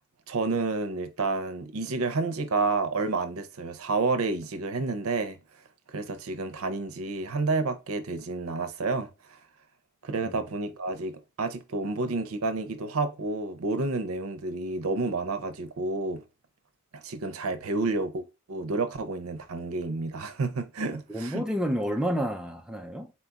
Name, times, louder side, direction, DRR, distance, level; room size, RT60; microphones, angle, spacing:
voice 1, 0.3-5.4 5.9-9.1 10.0-16.2 16.9-21.4, right 3 dB, 75° right, 0.6 m, -30 dB
voice 2, 21.1-23.1, equal, 5° right, 0.3 m, -30 dB
4.2 x 2.3 x 3.9 m
head